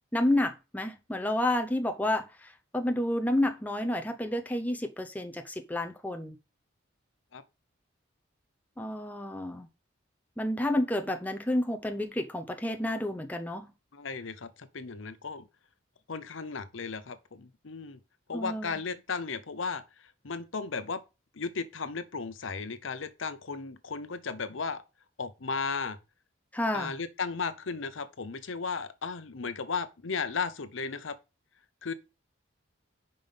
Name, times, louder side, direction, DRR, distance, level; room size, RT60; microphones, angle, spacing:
voice 1, 0.1-6.3 8.8-9.7 10.4-13.7 18.3-18.8 26.5-27.0, left 1 dB, 10° left, 0.7 m, -30 dB
voice 2, 13.9-15.4 16.1-18.0 18.3-19.8 20.2-21.0 21.3-24.8 25.2-26.0 26.7-31.2 31.8-31.9, left 5 dB, 75° left, 0.8 m, -35 dB
5.5 x 5.3 x 5.6 m
head